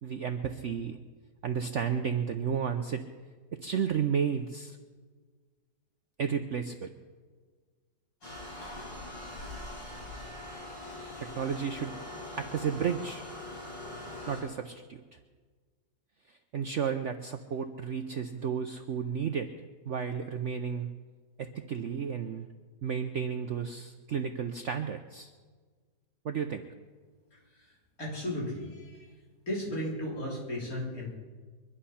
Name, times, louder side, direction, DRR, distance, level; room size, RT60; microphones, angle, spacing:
voice 1, 0.0-1.0 1.4-3.0 3.5-4.8 6.2-6.9 11.2-11.9 12.4-13.2 14.3-15.0 16.3-19.5 19.9-20.9 21.4-22.5 22.8-25.3 26.2-26.7, right 7 dB, 60° right, 7 dB, 0.8 m, -32 dB
sound 1, 8.2-14.4, left 1 dB, 80° left, 7.5 m, -42 dB
voice 2, 27.3-27.7 28.0-29.1 29.5-31.1, left 1 dB, 50° left, -4 dB, 4.2 m, -35 dB
23.0 x 11.0 x 5.7 m, 1.5 s
omnidirectional pair, 1.9 m